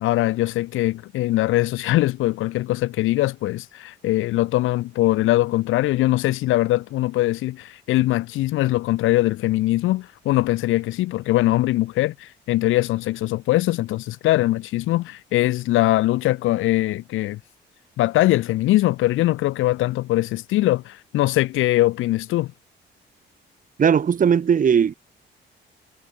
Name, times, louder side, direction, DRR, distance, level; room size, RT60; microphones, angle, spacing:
voice 1, 0.0-17.4 18.0-22.5, left 16 dB, 85° left, 1.0 m, -21 dB
voice 2, 23.8-24.9, right 7 dB, 40° right, 1.0 m, -18 dB
cardioid pair, 90°, 20 cm